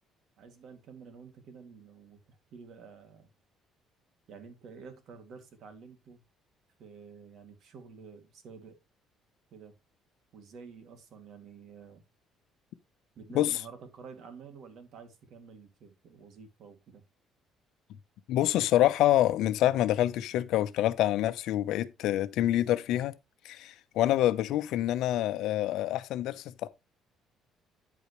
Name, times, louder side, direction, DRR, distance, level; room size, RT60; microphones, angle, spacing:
voice 1, 0.4-3.3 4.3-6.2 6.8-8.8 9.5-9.7 10.3-12.0 13.2-17.0, right 5 dB, 55° right, 2.5 m, -50 dB
voice 2, 18.3-23.1 23.4-26.7, left 13 dB, 75° left, 0.8 m, -26 dB
9.5 x 8.4 x 3.2 m
cardioid pair, 135°, 0 cm